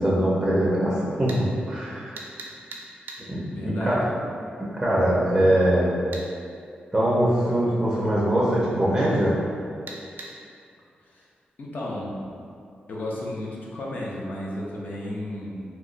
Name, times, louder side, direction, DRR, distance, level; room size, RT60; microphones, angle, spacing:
voice 1, 0.0-2.2 3.2-4.1 4.7-5.9 6.9-9.4, right 1 dB, 10° right, -7 dB, 0.5 m, -22 dB
sound 1, 1.3-1.4 2.2-3.2 6.1-6.3 9.9-10.3, right 3 dB, 70° right, 0.4 m, -38 dB
voice 2, 3.5-4.2 11.1-11.2 11.6-12.3 12.9-15.6, left 1 dB, 60° left, -4 dB, 0.6 m, -33 dB
2.9 x 2.2 x 3.7 m, 2.4 s
wide cardioid pair, 145°, 3 cm